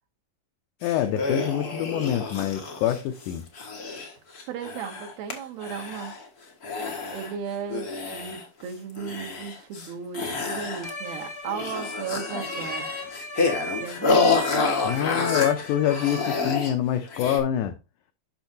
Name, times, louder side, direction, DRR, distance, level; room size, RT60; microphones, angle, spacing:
voice 1, 0.8-3.5 14.8-17.7, left 10 dB, 85° left, 1.7 m, -26 dB
sound 1, 0.8-5.3 5.6-6.3 6.6-7.3 7.7-8.6 8.9-9.9 10.1-11.1 11.4-16.7 17.1-17.4, left 4 dB, 50° left, 1.1 m, -29 dB
voice 2, 4.5-6.1 7.1-12.9 13.8-14.4, right 7 dB, 80° right, 3.1 m, -35 dB
sound 2, 10.8-16.4, left 1 dB, 30° left, 0.5 m, -36 dB
10.5 x 6.3 x 2.7 m
omnidirectional pair, 4.3 m